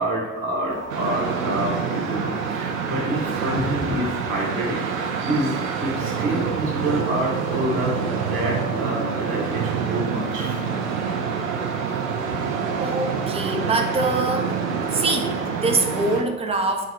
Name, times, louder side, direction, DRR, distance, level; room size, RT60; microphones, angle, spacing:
voice 1, 0.0-10.6 12.3-12.4, right 1 dB, 50° right, -3 dB, 1.2 m, -27 dB
sound 1, 0.7-16.2, right 1 dB, 80° left, 0.8 m, -37 dB
sound 2, 0.9-16.2, right 6 dB, 75° right, 0.5 m, -27 dB
voice 2, 12.8-14.6 14.9-16.9, right 2 dB, 15° right, 4 dB, 0.4 m, -24 dB
5.0 x 2.1 x 3.9 m, 1.1 s
figure-of-eight pair, 50°, 41 cm